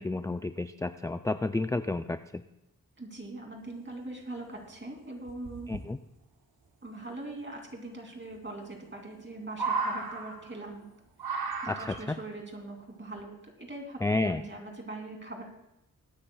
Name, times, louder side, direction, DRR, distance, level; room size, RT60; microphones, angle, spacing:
voice 1, 0.0-2.4 5.7-6.0 11.7-12.2 14.0-14.4, left 2 dB, 10° left, 10 dB, 0.4 m, -31 dB
voice 2, 3.0-5.7 6.8-10.9 11.6-15.4, right 2 dB, 30° right, 1 dB, 2.8 m, -42 dB
sound 1, 4.2-4.3 4.6-4.7 5.3-5.8 7.4-7.5 8.7-9.2 9.5-10.7 11.2-12.2 13.2-13.3, right 4 dB, 90° right, 1.1 m, -34 dB
21.5 x 9.8 x 2.3 m, 0.85 s
cardioid pair, 55°, 35 cm